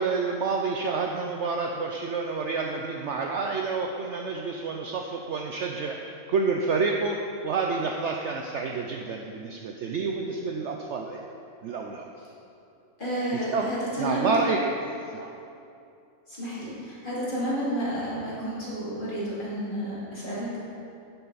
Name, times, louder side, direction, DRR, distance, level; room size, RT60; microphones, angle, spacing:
voice 1, 0.0-7.2 7.4-11.2 11.6-12.1 13.3-13.7 14.0-14.7 15.1-15.3, right 4 dB, 65° right, 1 dB, 0.8 m, -29 dB
voice 2, 13.0-14.5 16.3-20.6, equal, 35° left, -9 dB, 2.7 m, -31 dB
11.0 x 6.8 x 4.0 m, 2.6 s
omnidirectional pair, 1.6 m